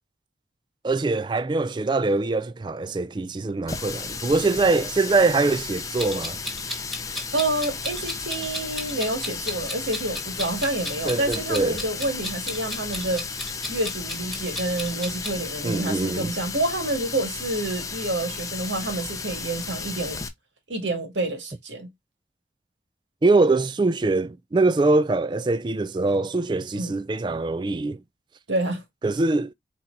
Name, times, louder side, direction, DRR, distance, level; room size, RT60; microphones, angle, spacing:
voice 1, 0.8-6.4 11.1-11.8 15.6-16.3 23.2-28.0 29.0-29.5, right 3 dB, 25° right, 0.3 m, -23 dB
Water tap faucet, 3.7-20.3, left 5 dB, 20° left, 0.6 m, -34 dB
Clock, 6.0-15.3, left 1 dB, ahead, 1.2 m, -35 dB
voice 2, 7.3-13.3 13.7-20.2 20.7-21.9 26.7-26.9 28.5-28.8, right 2 dB, 85° right, 1.8 m, -28 dB
4.5 x 4.2 x 2.5 m
head